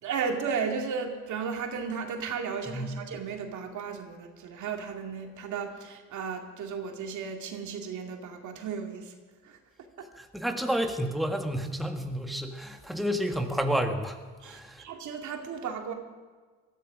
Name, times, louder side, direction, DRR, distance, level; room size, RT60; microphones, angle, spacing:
voice 1, 0.0-9.1 9.4-9.6 10.0-10.1 14.4-15.9, right 6 dB, 75° right, 3 dB, 2.3 m, -34 dB
voice 2, 2.7-3.0 10.2-14.2 14.4-14.8, equal, ahead, 4 dB, 1.5 m, -30 dB
19.0 x 14.0 x 5.1 m, 1.4 s
cardioid pair, 90°, 30 cm